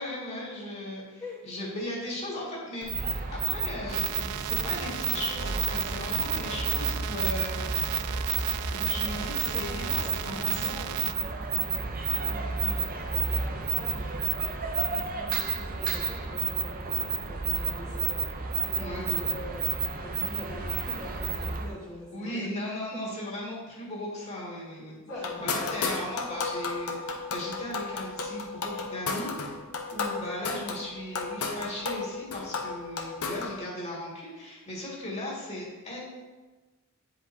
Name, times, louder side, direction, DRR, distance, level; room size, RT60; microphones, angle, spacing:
voice 1, 0.0-7.6 8.7-11.1 18.8-19.4 22.1-25.0 25.4-29.3 29.9-36.0, left 1 dB, 30° left, -6 dB, 2.2 m, -37 dB
voice 2, 1.2-1.5 9.1-22.5 22.9-23.0 25.0-26.0, equal, 15° left, -7 dB, 1.2 m, -44 dB
sound 1, 2.8-21.7, right 5 dB, 40° right, 0.6 m, -30 dB
sound 2, 3.9-11.1, right 11 dB, 75° right, 0.3 m, -37 dB
sound 3, 25.1-33.6, left 4 dB, 80° left, 0.8 m, -34 dB
9.8 x 5.1 x 2.7 m, 1.3 s
head